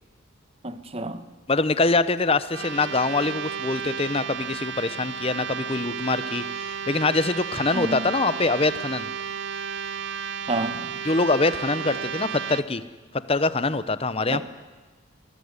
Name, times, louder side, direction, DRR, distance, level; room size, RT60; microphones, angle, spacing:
voice 1, 0.6-1.2 7.7-8.1 10.5-11.0 14.3-14.4, right 2 dB, 25° right, 1.2 m, -30 dB
voice 2, 1.5-9.1 11.0-12.8 13.3-14.4, left 3 dB, 25° left, 0.8 m, -24 dB
sound 1, 2.5-12.6, right 7 dB, 55° right, 0.9 m, -33 dB
23.5 x 20.0 x 9.7 m
head